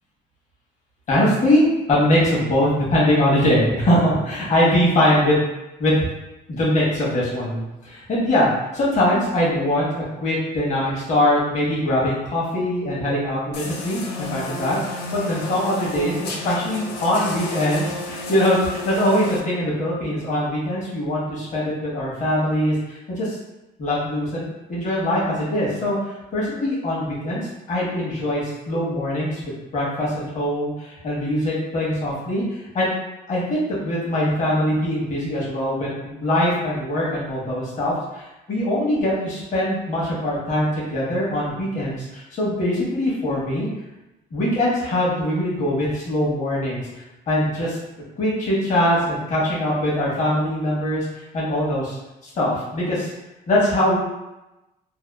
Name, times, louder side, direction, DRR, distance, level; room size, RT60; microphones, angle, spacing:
voice 1, 1.1-5.4 5.8-6.1 6.5-23.4 23.8-27.4 27.7-29.4 29.7-32.9 33.3-38.2 38.5-43.7 44.3-46.9 47.3-47.8 48.2-52.0 52.2-53.1 53.5-54.0, left 1 dB, 45° left, -6 dB, 1.0 m, -22 dB
sound 1, 13.5-19.4, left 2 dB, 85° left, 0.4 m, -32 dB
2.7 x 2.1 x 2.2 m, 0.97 s
cardioid pair, 110°, 17 cm